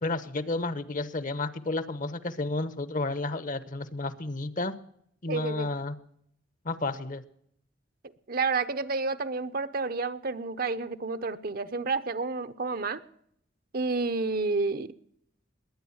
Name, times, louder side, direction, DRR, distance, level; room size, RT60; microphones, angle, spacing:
voice 1, 0.0-4.7 5.2-5.9 6.6-7.2, left 2 dB, 45° left, 15 dB, 1.0 m, -31 dB
voice 2, 5.3-5.7 8.3-13.0 13.7-14.9, right 3 dB, 50° right, 13 dB, 0.8 m, -30 dB
21.0 x 9.3 x 7.2 m, 0.68 s
head